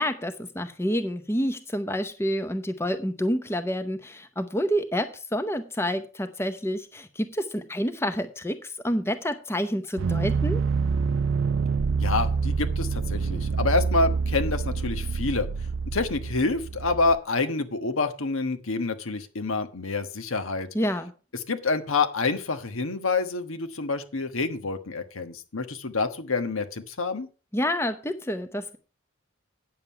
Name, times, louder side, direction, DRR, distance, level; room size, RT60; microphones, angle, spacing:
voice 1, 0.0-10.6 20.7-21.1 27.5-28.8, equal, 10° left, 9 dB, 0.7 m, -28 dB
sound 1, 10.0-17.2, right 5 dB, 65° right, 0.4 m, -27 dB
voice 2, 12.0-15.5 15.9-20.7 21.5-27.3, left 3 dB, 80° left, 8 dB, 1.3 m, -27 dB
9.3 x 7.5 x 5.7 m, 0.35 s
head